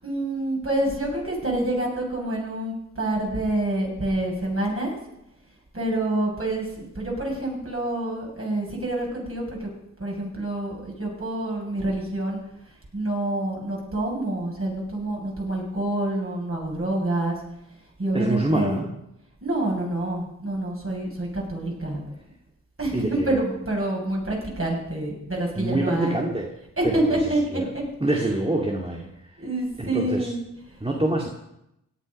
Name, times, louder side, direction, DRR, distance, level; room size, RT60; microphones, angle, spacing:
voice 1, 0.0-5.0 5.7-9.7 10.0-12.4 12.9-17.4 18.0-18.8 19.4-22.0 22.8-26.2 26.8-27.8 28.1-28.4 29.4-30.4, right 1 dB, 40° right, -2 dB, 7.1 m, -27 dB
voice 2, 18.1-18.8 22.9-23.4 25.6-26.5 26.8-27.7 28.0-29.1 29.8-30.3 30.8-31.3, right 1 dB, 15° right, -1 dB, 2.2 m, -26 dB
17.0 x 10.0 x 5.5 m, 0.84 s
cardioid pair, 45°, 34 cm